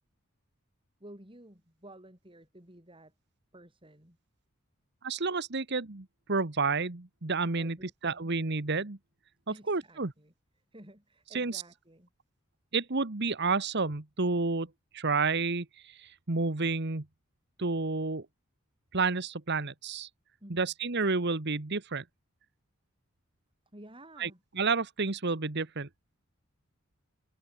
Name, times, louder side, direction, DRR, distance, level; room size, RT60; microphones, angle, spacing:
voice 1, 1.0-3.1 3.5-4.2 7.5-8.3 9.5-12.1 20.4-20.7 23.7-24.4, right 1 dB, 25° right, 6.0 m, -53 dB
voice 2, 5.0-7.8 8.0-9.0 9.7-10.1 11.3-11.6 12.7-14.7 14.9-17.0 17.6-18.3 18.9-20.1 20.5-22.0 24.2-24.3 24.6-25.9, right 4 dB, 55° right, 1.4 m, -30 dB
head